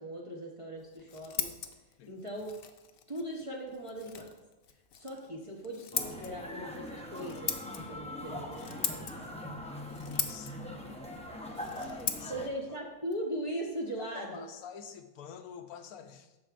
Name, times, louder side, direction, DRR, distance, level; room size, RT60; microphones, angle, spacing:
voice 1, 0.0-1.5 2.1-2.5 3.1-4.3 4.9-7.5 7.9-9.1 12.3-14.4, right 1 dB, 30° right, -2 dB, 0.7 m, -39 dB
Scissors, 0.8-14.4, left 8 dB, 65° left, 0.6 m, -41 dB
sound 1, 5.9-12.5, left 1 dB, 10° left, 0.3 m, -42 dB
voice 2, 9.8-10.5 11.7-12.8 13.9-16.4, left 7 dB, 85° left, 8 dB, 1.1 m, -48 dB
12.5 x 4.6 x 2.5 m, 1.1 s
omnidirectional pair, 1.5 m